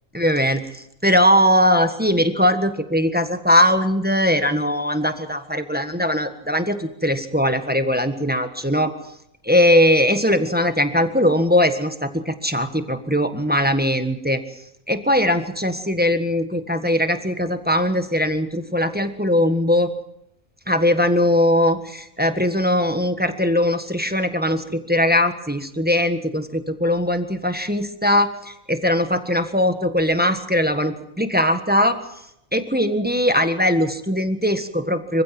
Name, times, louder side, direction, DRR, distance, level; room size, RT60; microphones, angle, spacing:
voice 1, 0.1-8.9 9.4-14.4 14.9-19.9 20.7-32.0 32.5-35.2, left 1 dB, 5° right, 8 dB, 1.4 m, -20 dB
25.5 x 15.5 x 7.6 m, 0.81 s
omnidirectional pair, 1.4 m